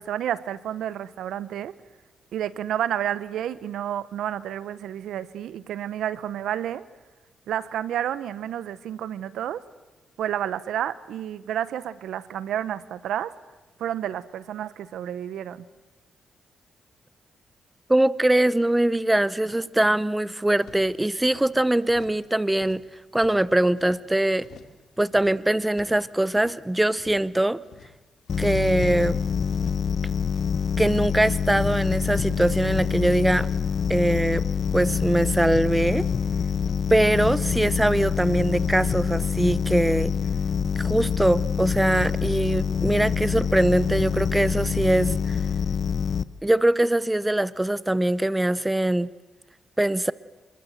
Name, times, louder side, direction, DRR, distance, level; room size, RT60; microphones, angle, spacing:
voice 1, 0.0-1.7 2.3-6.8 7.5-9.6 10.2-13.3 13.8-15.7, right 10 dB, 85° right, 16 dB, 1.0 m, -30 dB
voice 2, 17.9-22.8 23.1-24.5 25.0-27.6 28.4-29.2 30.8-33.5 33.9-34.4 34.7-36.0 36.9-40.1 40.8-45.4 46.4-49.1 49.8-50.1, right 1 dB, 10° right, 18 dB, 0.7 m, -22 dB
sound 1, 20.6-21.5 21.8-22.2 22.5-24.0 24.4-24.8 25.0-26.6 26.9-27.3 27.6-29.1 29.5-29.9 30.2-31.7 32.0-32.5 32.7-34.2 34.6-35.0 35.3-36.8 37.2-37.6 37.8-38.2 38.5-39.3 39.7-40.1, left 7 dB, 80° left, 2.5 m, -50 dB
sound 2, 28.3-46.2, left 6 dB, 55° left, 0.8 m, -26 dB
26.0 x 22.0 x 8.1 m, 1.2 s
cardioid pair, 80°, 0 cm